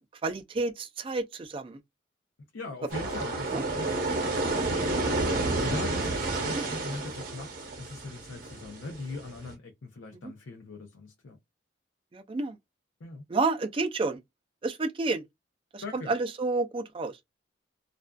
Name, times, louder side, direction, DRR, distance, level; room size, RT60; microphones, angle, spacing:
voice 1, 0.2-1.8 3.5-3.6 6.5-6.6 10.2-10.3 12.1-12.6 13.3-14.2 14.6-15.2 15.7-17.2, right 3 dB, 25° right, 0.3 m, -30 dB
voice 2, 2.5-4.3 4.7-4.9 5.6-11.4 13.0-13.2 15.8-16.1, left 3 dB, 85° left, 0.6 m, -40 dB
sound 1, 2.9-9.5, right 2 dB, 45° right, 0.8 m, -30 dB
2.4 x 2.3 x 2.2 m
head